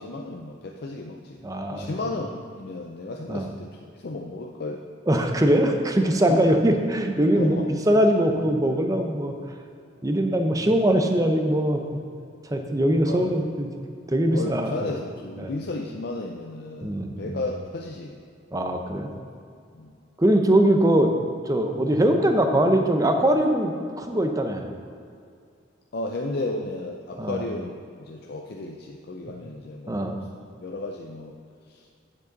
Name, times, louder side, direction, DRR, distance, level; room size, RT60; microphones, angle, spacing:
voice 1, 0.0-4.8 6.3-6.4 7.4-7.7 13.1-13.4 14.3-18.2 19.7-19.9 25.9-30.3 30.6-31.3 31.7-31.9, left 2 dB, 50° left, 1 dB, 0.5 m, -34 dB
voice 2, 1.4-1.9 3.3-3.5 5.1-9.3 10.0-12.0 12.5-13.7 14.1-14.8 15.4-15.5 16.8-17.5 18.5-19.1 20.2-21.1 21.4-24.6 27.2-27.4 29.9-30.2, right 1 dB, 15° right, 4 dB, 0.6 m, -22 dB
9.5 x 7.4 x 3.9 m, 2.3 s
head